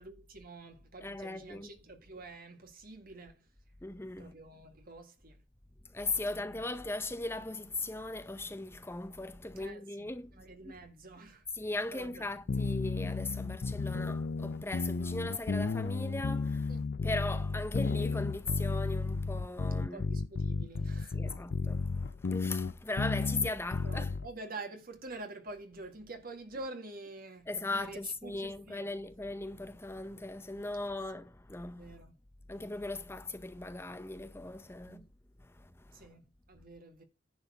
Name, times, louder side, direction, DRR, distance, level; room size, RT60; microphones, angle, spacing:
voice 1, 0.0-3.5 4.2-5.4 9.6-10.1 10.3-11.4 11.9-12.3 16.7-16.8 19.9-21.2 23.1-23.3 23.8-29.0 30.9-31.0 31.6-32.2 34.8-35.0 35.9-37.0, right 2 dB, 50° right, 1.9 m, -47 dB
voice 2, 1.0-1.7 3.8-4.3 5.9-10.3 10.6-10.8 11.5-16.7 17.0-20.0 21.1-24.1 27.5-31.9 32.5-35.0 35.5-36.1, left 2 dB, 15° left, 0.6 m, -38 dB
sound 1, 12.5-24.3, left 4 dB, 55° left, 0.5 m, -33 dB
10.5 x 4.1 x 7.3 m
head